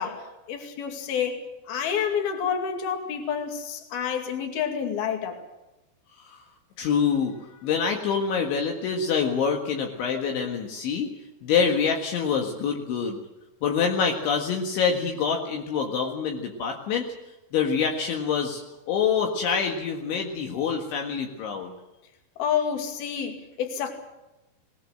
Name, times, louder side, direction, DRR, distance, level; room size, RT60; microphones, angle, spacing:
voice 1, 0.0-1.4 1.7-5.4 22.4-23.9, left 7 dB, 55° left, 4 dB, 4.0 m, -29 dB
voice 2, 6.8-11.1 11.4-13.2 13.6-17.1 17.5-18.6 18.9-21.7, left 6 dB, 70° left, 1 dB, 4.0 m, -26 dB
21.0 x 20.0 x 7.7 m, 0.98 s
omnidirectional pair, 5.7 m